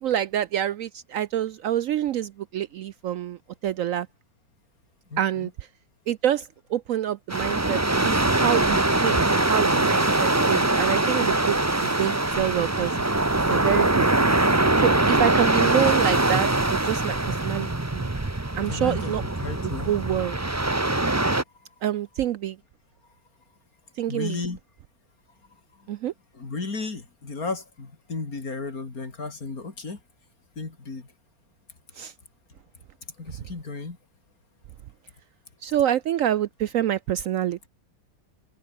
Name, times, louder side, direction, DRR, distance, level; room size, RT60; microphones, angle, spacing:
voice 1, 0.0-4.1 5.2-5.5 6.1-13.1 13.5-14.3 14.8-18.1 18.6-19.2 19.9-20.4 21.8-22.6 24.0-24.4 25.9-26.1 32.0-32.1 35.6-37.7, right 11 dB, 80° right, 0.7 m, -27 dB
voice 2, 5.1-5.5 18.7-19.9 21.5-21.7 24.1-24.6 25.7-25.9 26.3-30.0 30.6-31.1 33.2-34.0, left 3 dB, 50° left, 3.7 m, -34 dB
sound 1, 7.3-21.4, right 2 dB, 10° right, 0.8 m, -23 dB
omnidirectional pair, 2.0 m